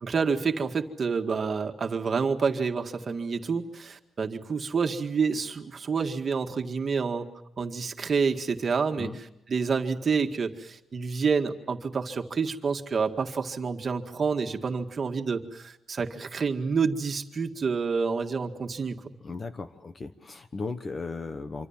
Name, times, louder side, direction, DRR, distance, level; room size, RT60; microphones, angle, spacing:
voice 1, 0.0-7.3 7.6-9.1 9.5-19.1, right 5 dB, 40° right, 5 dB, 1.9 m, -28 dB
voice 2, 19.2-21.7, left 4 dB, 35° left, 9 dB, 1.2 m, -36 dB
26.5 x 25.0 x 7.4 m, 0.84 s
cardioid pair, 130°, 0 cm